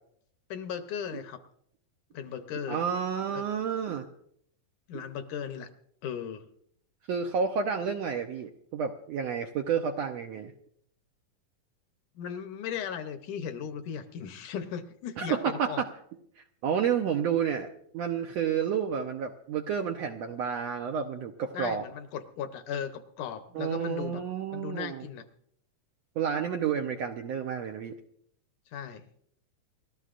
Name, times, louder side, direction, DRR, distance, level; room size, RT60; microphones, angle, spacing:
voice 1, 0.5-1.4 2.1-2.8 3.3-3.4 4.9-5.7 6.0-6.5 12.2-15.8 21.5-24.2 24.5-25.3 28.7-29.1, left 8 dB, 75° left, 8 dB, 2.2 m, -37 dB
voice 2, 2.7-4.0 7.1-10.5 15.2-15.9 16.4-17.7 17.9-21.8 23.5-25.0 26.2-27.9, right 7 dB, 75° right, 4 dB, 1.6 m, -30 dB
29.5 x 13.5 x 2.5 m, 0.70 s
omnidirectional pair, 3.8 m